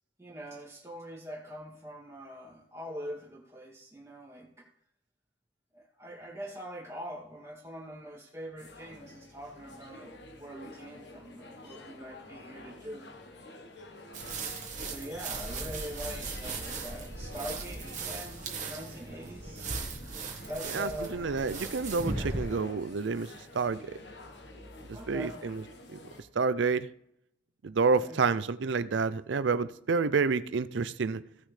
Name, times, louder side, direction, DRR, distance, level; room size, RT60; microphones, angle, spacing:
voice 1, 0.2-4.6 5.7-13.1 14.8-19.8 20.5-21.3 24.9-25.4 27.9-28.2, equal, 15° right, 2.3 m, -43 dB
sound 1, 8.6-26.2, left 2 dB, 65° left, 1.3 m, -49 dB
sound 2, 14.1-22.4, right 3 dB, 40° right, 1.4 m, -38 dB
voice 2, 20.7-24.0 24.9-25.6 26.4-26.9 27.6-31.2, right 4 dB, 75° right, 0.5 m, -29 dB
16.0 x 6.2 x 3.3 m
head